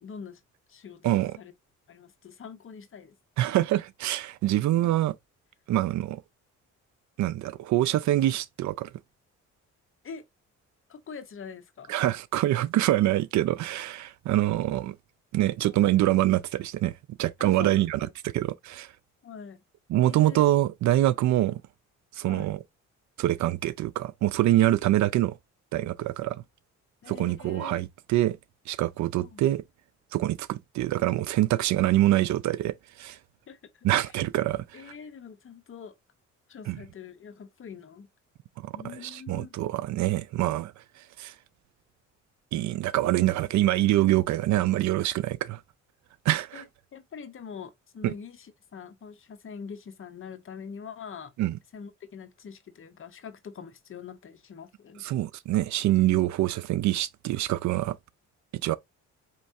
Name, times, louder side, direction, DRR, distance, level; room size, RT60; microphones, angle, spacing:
voice 1, 0.0-0.4 0.7-1.5 1.9-3.2 4.8-4.9 10.0-10.2 10.9-11.9 15.6-15.9 17.4-18.1 19.2-19.6 20.0-20.4 22.2-22.5 27.0-27.8 29.2-29.4 33.5-34.1 34.7-36.0 36.5-38.1 38.7-39.5 46.5-46.7 46.9-51.3 51.7-55.0, left 6 dB, 45° left, 0.9 m, -44 dB
voice 2, 3.4-5.1 5.7-6.2 7.2-8.9 11.9-14.9 15.3-18.9 19.9-21.6 22.1-22.6 23.2-25.4 25.7-26.4 27.1-28.4 28.7-29.6 30.1-33.2 33.8-34.9 36.7-36.8 38.6-40.7 41.2-41.3 42.5-45.6 46.3-46.6 48.0-48.1 51.4-51.6 55.0-58.0 58.6-58.8, right 14 dB, 70° right, 0.5 m, -25 dB
4.5 x 3.2 x 2.6 m
cardioid pair, 90°, 30 cm